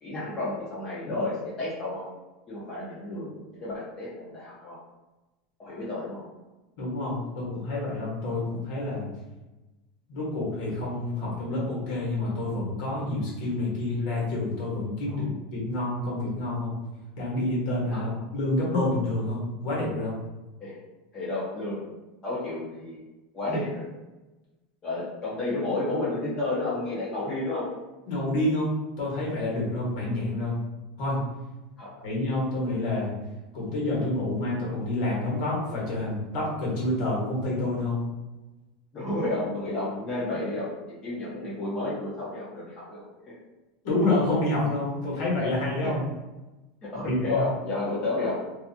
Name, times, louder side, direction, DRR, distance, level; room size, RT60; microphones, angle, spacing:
voice 1, 0.0-2.1 2.5-4.8 5.6-6.2 15.1-15.3 17.9-18.2 20.6-20.8 21.1-21.9 22.2-23.0 23.3-23.9 24.8-27.7 31.8-31.9 38.9-43.3 45.8-46.0 46.8-48.4, left 2 dB, 20° left, -8 dB, 0.5 m, -31 dB
voice 2, 6.8-9.1 10.1-15.3 15.5-16.7 17.2-20.2 28.1-28.7 29.0-30.5 31.0-31.2 32.0-33.1 33.5-38.0 43.8-46.0 47.0-47.4, left 2 dB, 55° left, -4 dB, 1.1 m, -28 dB
2.6 x 2.4 x 2.6 m, 1.1 s
supercardioid pair, 180°, 3 cm